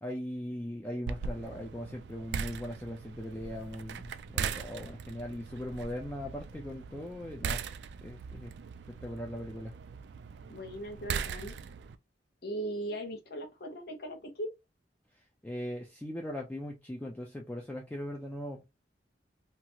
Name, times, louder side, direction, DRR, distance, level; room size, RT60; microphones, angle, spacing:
voice 1, 0.0-7.6 8.0-8.5 8.9-9.7 15.4-18.6, equal, 10° left, 0.4 m, -39 dB
sound 1, 1.1-12.0, right 6 dB, 70° right, 0.3 m, -40 dB
voice 2, 10.5-11.6 12.4-14.5, right 1 dB, 60° left, 1.0 m, -38 dB
2.8 x 2.4 x 2.8 m
head